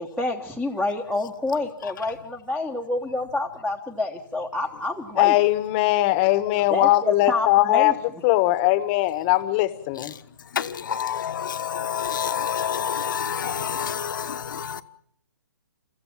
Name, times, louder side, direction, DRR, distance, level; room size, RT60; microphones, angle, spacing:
voice 1, 0.0-5.3 6.7-7.9, left 2 dB, ahead, 1.2 m, -28 dB
voice 2, 5.2-7.9 8.2-10.1, left 17 dB, 30° left, 1.2 m, -20 dB
voice 3, 10.5-14.8, left 8 dB, 65° left, 1.3 m, -28 dB
28.0 x 14.5 x 7.5 m
hypercardioid pair, 145°, 11 cm